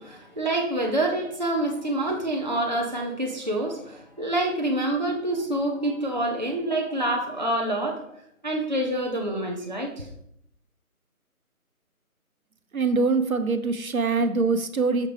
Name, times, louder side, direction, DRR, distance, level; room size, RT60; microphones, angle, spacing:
voice 1, 0.0-8.0 8.4-10.1, right 1 dB, 30° right, 0 dB, 0.7 m, -27 dB
voice 2, 12.7-15.1, right 4 dB, 70° right, 9 dB, 1.1 m, -23 dB
6.5 x 6.2 x 4.9 m, 0.75 s
figure-of-eight pair, 175°, 44 cm